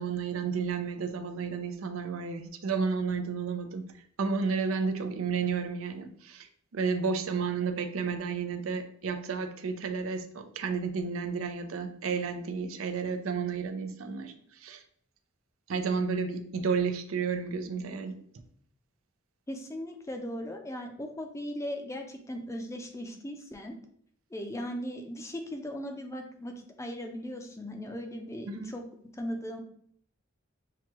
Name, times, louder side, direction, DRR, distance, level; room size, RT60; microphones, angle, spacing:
voice 1, 0.0-3.8 4.2-14.8 15.7-18.2 28.5-28.7, right 5 dB, 90° right, 8 dB, 0.5 m, -32 dB
voice 2, 19.5-23.7 24.3-28.8 29.2-29.6, equal, 15° left, 4 dB, 0.5 m, -38 dB
5.9 x 2.2 x 2.9 m, 0.63 s
head